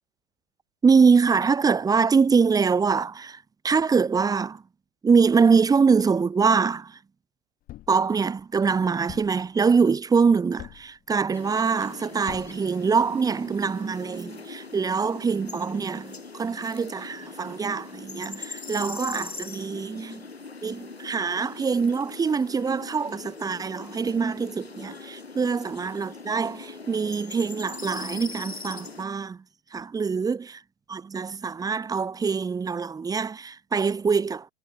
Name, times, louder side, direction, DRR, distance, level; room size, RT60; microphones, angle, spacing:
voice 1, 0.8-3.4 3.6-4.6 5.0-7.0 7.9-20.2 20.6-29.4 29.7-30.6 30.9-34.5, right 5 dB, 10° right, 1.4 m, -24 dB
Thump thud, 7.7-8.1 9.1-9.5 10.6-11.0 12.3-12.7, left 14 dB, 30° left, 1.6 m, -42 dB
sound 1, 11.3-29.1, left 4 dB, 85° left, 1.4 m, -41 dB
figure-of-eight pair, 95°, 30 cm